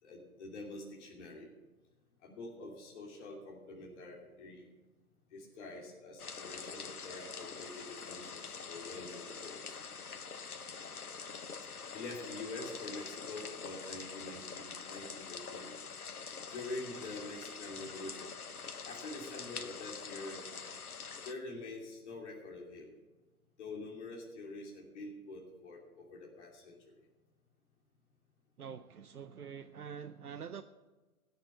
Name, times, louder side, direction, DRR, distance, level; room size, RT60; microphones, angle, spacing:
voice 1, 0.0-1.5 2.2-4.6 5.3-9.8 11.9-15.7 16.5-18.3 18.8-20.5 21.2-22.9 23.6-26.8, left 2 dB, 50° left, -1 dB, 2.9 m, -46 dB
sound 1, 6.2-21.3, left 5 dB, 85° left, 1.0 m, -45 dB
voice 2, 28.6-30.6, right 7 dB, 85° right, 8 dB, 0.7 m, -45 dB
17.0 x 6.8 x 6.4 m, 1.2 s
figure-of-eight pair, 120°, 44 cm